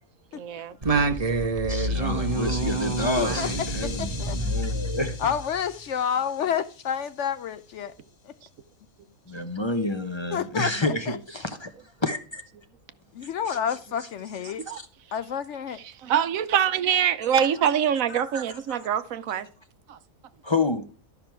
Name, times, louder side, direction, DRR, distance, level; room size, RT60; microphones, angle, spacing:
voice 1, 0.3-0.8 14.7-14.8 15.8-19.5 19.9-20.0, right 9 dB, 75° right, 1.1 m, -24 dB
Singing, 0.8-5.6, right 2 dB, 30° right, 0.9 m, -27 dB
voice 2, 1.7-5.3 9.3-11.7 12.0-12.4 13.2-13.6 14.5-14.9 17.3-17.5 18.1-18.9 20.4-20.8, left 2 dB, 25° left, 0.8 m, -30 dB
sound 1, 1.8-7.9, left 5 dB, 50° left, 1.2 m, -43 dB
voice 3, 3.1-3.5 4.0-4.4 5.2-7.9 10.3-11.2 13.1-14.6 15.1-15.8, left 8 dB, 65° left, 0.9 m, -29 dB
12.5 x 6.0 x 4.5 m
omnidirectional pair, 1.5 m